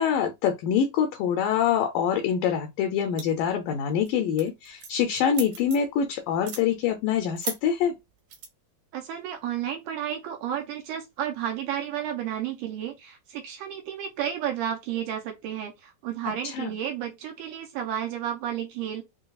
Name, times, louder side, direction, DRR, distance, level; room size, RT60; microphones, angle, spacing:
voice 1, 0.0-7.9 16.4-16.7, left 8 dB, 80° left, 2.0 m, -25 dB
sound 1, 3.2-3.5 3.9-4.1 4.4-6.0 6.3-6.6 7.4-7.6 8.3-8.5, right 6 dB, 65° right, 2.1 m, -36 dB
voice 2, 8.9-19.0, right 10 dB, 80° right, 1.9 m, -32 dB
6.4 x 2.3 x 2.3 m
omnidirectional pair, 4.2 m